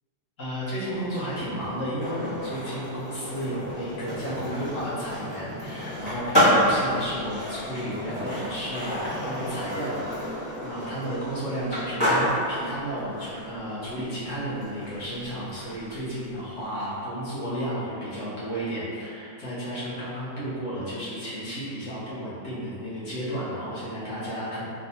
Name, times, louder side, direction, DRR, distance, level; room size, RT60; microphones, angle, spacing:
voice 1, 0.4-24.6, equal, 50° left, -11 dB, 1.3 m, -33 dB
Skateboard, 1.0-16.9, equal, 15° left, 1.1 m, -30 dB
3.4 x 3.1 x 2.7 m, 2.6 s
omnidirectional pair, 1.8 m